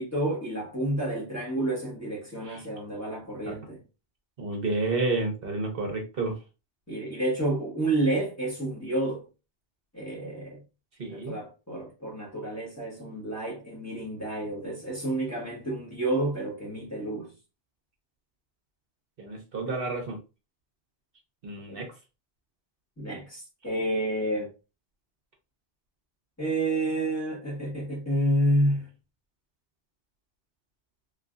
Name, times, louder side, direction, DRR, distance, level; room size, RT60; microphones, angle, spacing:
voice 1, 0.0-3.8 6.9-9.2 9.9-10.6 11.1-17.3 21.7-21.8 23.0-24.5 26.4-28.9, right 1 dB, 15° left, 1.5 m, -29 dB
voice 2, 4.4-6.4 11.0-11.4 19.2-20.2 21.4-21.9, right 3 dB, 60° right, 1.1 m, -30 dB
3.3 x 3.2 x 2.5 m
omnidirectional pair, 1.1 m